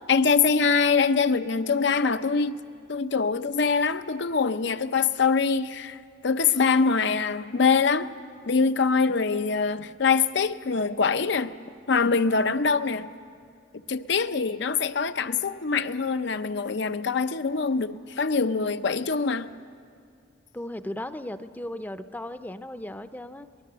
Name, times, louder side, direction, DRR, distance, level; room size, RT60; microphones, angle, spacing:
voice 1, 0.1-2.5 2.9-6.0 6.2-8.1 8.5-11.5 11.9-13.1 13.9-19.5, left 5 dB, 65° left, 0.7 m, -24 dB
voice 2, 20.5-23.5, left 1 dB, 10° left, 0.6 m, -36 dB
23.0 x 20.0 x 6.8 m
head